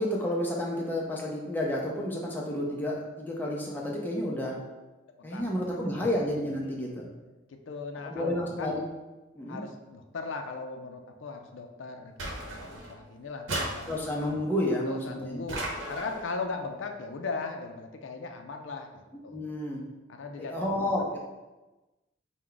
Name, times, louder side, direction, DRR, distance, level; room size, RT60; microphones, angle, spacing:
voice 1, 0.0-4.5 5.2-7.1 8.0-8.8 9.4-9.6 13.9-15.4 19.3-19.8 20.4-21.2, left 1 dB, 10° left, -2 dB, 0.5 m, -30 dB
voice 2, 5.2-5.6 6.0-6.1 6.6-6.8 7.7-8.7 9.5-13.9 14.8-19.5 20.1-21.2, left 4 dB, 75° left, 5 dB, 0.4 m, -38 dB
sound 1, 12.2-13.0 13.5-14.4 15.5-16.3, right 1 dB, 85° right, 0.9 m, -35 dB
4.6 x 2.2 x 3.8 m, 1.1 s
head